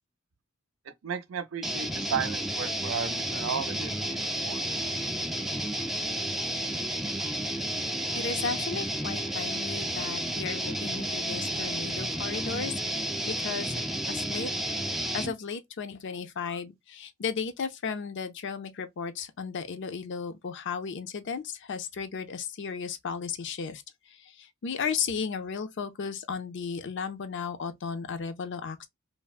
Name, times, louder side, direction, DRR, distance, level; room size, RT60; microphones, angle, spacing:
voice 1, 1.0-4.6, right 7 dB, 70° right, 0.5 m, -34 dB
sound 1, 1.6-15.3, right 1 dB, ahead, 0.3 m, -31 dB
voice 2, 8.1-14.5 15.1-23.8 24.2-28.9, left 6 dB, 60° left, 0.5 m, -35 dB
3.3 x 2.0 x 2.3 m
head